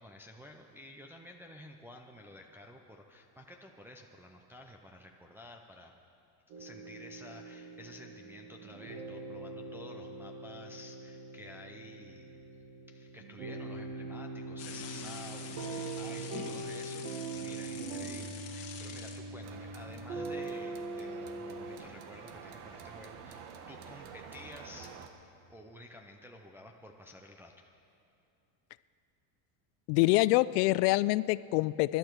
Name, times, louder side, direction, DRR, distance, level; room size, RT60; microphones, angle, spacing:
voice 1, 0.0-5.9 6.6-12.4 12.9-23.4 23.7-24.9 25.5-27.7, left 1 dB, 5° right, 0 dB, 0.3 m, -52 dB
sound 1, 6.5-21.8, right 2 dB, 60° right, 1.7 m, -42 dB
sound 2, 14.6-19.2, left 7 dB, 35° left, 1.5 m, -46 dB
sound 3, 19.4-25.1, right 6 dB, 80° right, 1.5 m, -49 dB
voice 2, 29.9-32.0, left 19 dB, 90° left, 18 dB, 0.5 m, -26 dB
23.5 x 12.0 x 4.6 m, 2.7 s
cardioid pair, 160°, 45 cm